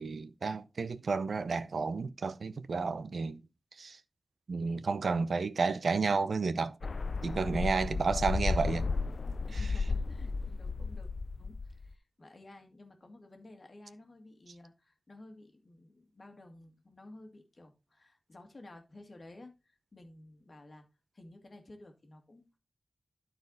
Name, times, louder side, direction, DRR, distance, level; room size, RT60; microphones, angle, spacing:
voice 1, 0.0-3.4 3.8-4.0 4.5-6.8 7.2-8.9, right 4 dB, 80° right, 0.6 m, -31 dB
sound 1, 6.8-11.9, left 4 dB, 60° left, 0.4 m, -33 dB
voice 2, 9.5-11.1 11.4-20.9 21.1-22.6, left 2 dB, 45° left, 2.1 m, -53 dB
12.0 x 4.4 x 3.9 m
wide cardioid pair, 100°, 0 cm